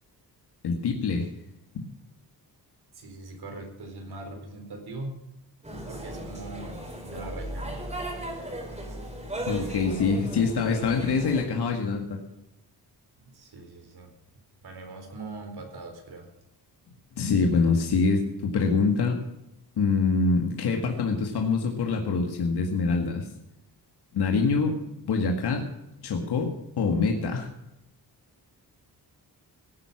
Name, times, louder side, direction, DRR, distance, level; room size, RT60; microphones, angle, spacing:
voice 1, 0.6-1.3 9.5-12.2 17.2-19.2 19.8-23.3 24.1-24.8 25.0-25.7 26.0-27.5, left 4 dB, 75° left, 2 dB, 2.0 m, -25 dB
voice 2, 2.9-5.2 5.9-6.7 7.1-7.7 13.2-14.1 14.6-16.3, right 2 dB, 70° right, 4 dB, 4.2 m, -41 dB
sound 1, 5.6-11.5, right 1 dB, 15° right, 3.9 m, -36 dB
17.5 x 9.7 x 6.0 m, 0.87 s
wide cardioid pair, 140°, 39 cm